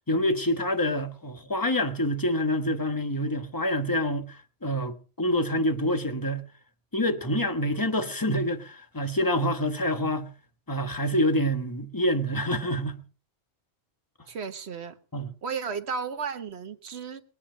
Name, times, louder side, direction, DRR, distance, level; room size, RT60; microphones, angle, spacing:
voice 1, 0.1-6.4 6.9-10.3 10.7-13.0 15.1-15.3, equal, 20° left, 1.4 m, -27 dB
voice 2, 14.3-15.0 15.4-17.2, right 5 dB, 70° right, 1.4 m, -34 dB
22.0 x 8.7 x 5.1 m
omnidirectional pair, 1.1 m